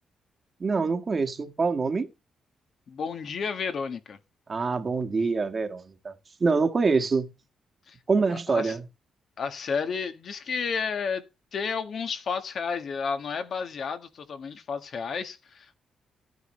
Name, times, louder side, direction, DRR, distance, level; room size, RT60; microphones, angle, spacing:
voice 1, 0.6-2.1 4.5-6.1 6.4-7.3 8.1-8.8, right 4 dB, 35° right, 1.5 m, -25 dB
voice 2, 2.9-4.2 7.9-8.0 8.3-8.8 9.4-11.2 11.5-15.8, left 5 dB, 55° left, 1.6 m, -31 dB
14.0 x 9.5 x 3.3 m
cardioid pair, 120°, 0 cm